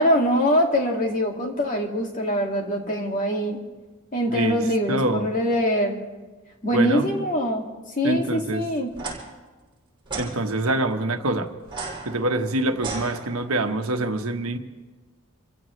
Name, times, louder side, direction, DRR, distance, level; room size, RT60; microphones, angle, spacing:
voice 1, 0.0-3.6 4.1-6.0 6.6-7.7 7.9-8.9, equal, 40° left, 1 dB, 2.2 m, -23 dB
voice 2, 4.3-5.3 6.7-7.1 8.0-8.6 10.2-11.5 12.0-14.6, right 1 dB, 80° right, 6 dB, 1.2 m, -25 dB
sound 1, 8.9-9.2 10.1-10.3 11.6-13.7, right 4 dB, 25° right, 6.0 m, -34 dB
28.0 x 16.0 x 3.2 m, 1.3 s
head